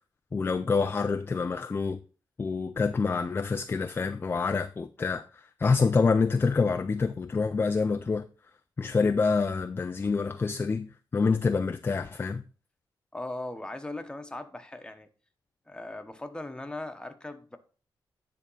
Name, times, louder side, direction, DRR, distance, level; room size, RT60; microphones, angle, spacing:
voice 1, 0.3-2.0 2.4-8.3 8.8-12.4, left 4 dB, 25° left, 0.4 m, -27 dB
voice 2, 13.1-15.1 15.7-17.6, left 2 dB, 10° left, 1.0 m, -39 dB
9.9 x 3.6 x 5.5 m
cardioid pair, 105°, 8 cm